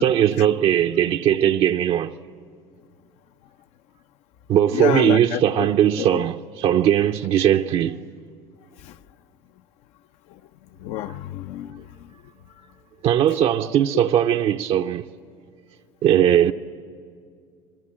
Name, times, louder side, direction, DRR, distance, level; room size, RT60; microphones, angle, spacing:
voice 1, 0.0-2.2 4.5-8.1 13.0-15.1 16.0-16.5, right 10 dB, 50° right, 0.7 m, -19 dB
voice 2, 4.7-5.7 6.0-6.2 8.8-9.0 10.8-12.1, left 12 dB, 65° left, 0.7 m, -29 dB
27.5 x 21.5 x 8.7 m
supercardioid pair, 100°, 12 cm